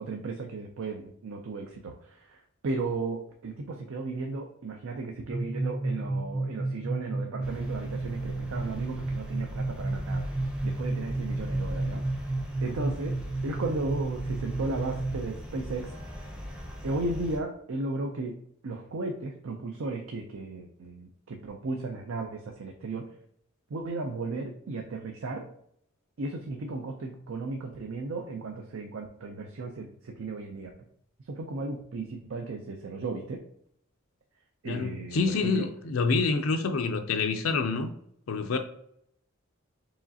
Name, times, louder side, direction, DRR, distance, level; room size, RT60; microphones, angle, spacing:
voice 1, 0.0-10.3 10.6-12.3 12.6-15.9 16.8-18.3 18.6-23.1 23.7-25.5 26.2-30.7 31.3-33.4 34.6-35.7, right 3 dB, 70° right, 0.5 m, -35 dB
sound 1, 5.3-15.1, right 2 dB, 35° right, 1.3 m, -32 dB
sound 2, 7.4-17.4, left 1 dB, 5° right, 0.6 m, -40 dB
voice 2, 34.7-37.9 38.3-38.6, left 4 dB, 75° left, 0.4 m, -27 dB
4.8 x 3.1 x 2.7 m
head